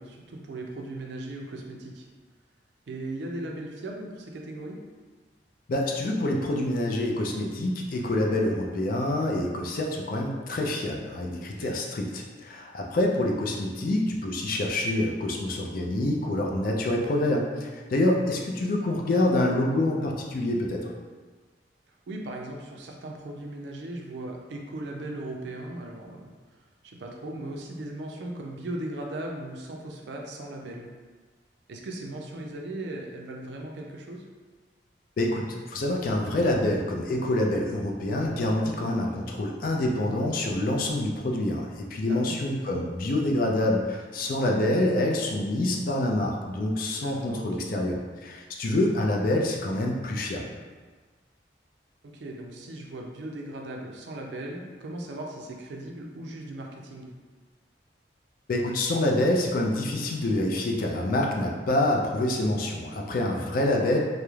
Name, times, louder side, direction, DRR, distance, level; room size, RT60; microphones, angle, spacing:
voice 1, 0.0-2.0 2.9-4.8 11.6-11.8 22.1-26.3 26.8-30.9 31.7-34.2 42.1-42.4 47.0-47.7 52.1-57.1, right 1 dB, 70° right, 1 dB, 0.4 m, -38 dB
voice 2, 5.7-20.9 35.2-50.5 58.5-64.0, left 1 dB, 50° left, 0 dB, 0.3 m, -26 dB
2.3 x 2.0 x 3.0 m, 1.4 s
head